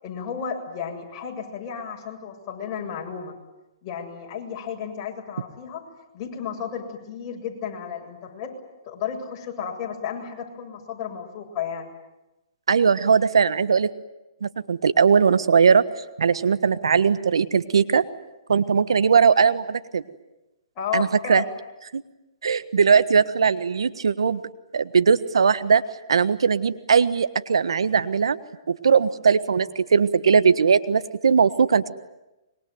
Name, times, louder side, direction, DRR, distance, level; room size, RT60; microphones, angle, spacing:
voice 1, 0.0-3.4 3.8-5.8 6.1-8.5 8.9-11.9 20.8-21.5, left 7 dB, 35° left, 0 dB, 7.4 m, -33 dB
voice 2, 12.7-13.9 14.4-15.8 16.2-18.0 18.5-20.0 20.9-21.4 21.9-22.0 22.4-24.4 24.7-25.8 26.1-28.4 28.7-31.9, right 6 dB, 80° right, 13 dB, 1.4 m, -19 dB
26.0 x 23.0 x 9.4 m, 0.98 s
hypercardioid pair, 140°, 3 cm